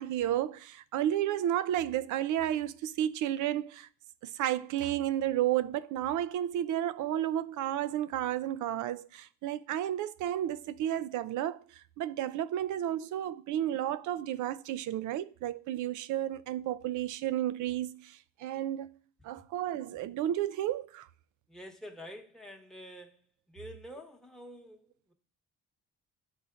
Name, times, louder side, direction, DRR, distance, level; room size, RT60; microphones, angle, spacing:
voice 1, 0.0-3.9 4.2-18.9 19.2-21.1, right 12 dB, 80° right, 0.4 m, -32 dB
voice 2, 21.5-23.2 23.5-25.1, equal, ahead, 1.0 m, -48 dB
10.0 x 3.9 x 2.5 m
cardioid pair, 90°, 30 cm